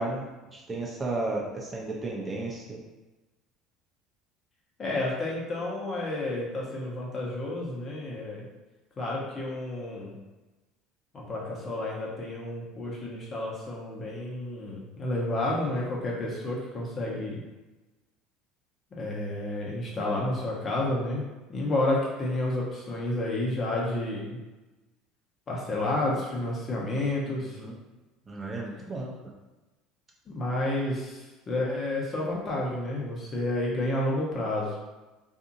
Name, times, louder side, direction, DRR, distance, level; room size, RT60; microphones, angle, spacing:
voice 1, 0.0-2.8 27.2-27.8 28.3-29.1, right 2 dB, 25° right, -3 dB, 0.7 m, -34 dB
voice 2, 4.8-8.4 9.0-10.2 11.1-17.4 19.0-21.2 21.5-24.4 25.5-27.6 30.3-34.7, left 1 dB, 40° left, -3 dB, 0.9 m, -30 dB
2.7 x 2.6 x 2.6 m, 1.1 s
hypercardioid pair, 75°, 0 cm